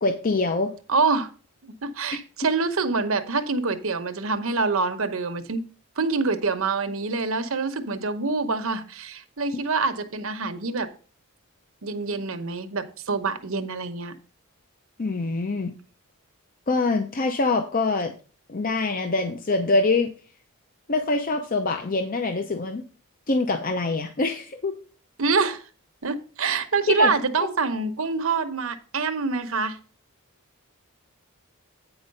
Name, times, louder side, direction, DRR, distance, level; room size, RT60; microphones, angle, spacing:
voice 1, 0.0-0.7 15.0-15.7 16.7-18.1 18.5-20.1 20.9-22.8 23.3-24.7 27.0-27.1, left 3 dB, 40° left, 6 dB, 0.6 m, -24 dB
voice 2, 0.9-1.3 1.6-5.6 6.0-10.9 11.8-14.1 25.2-25.6 26.0-29.8, right 4 dB, 70° right, 9 dB, 0.9 m, -26 dB
8.9 x 4.5 x 5.4 m, 0.38 s
head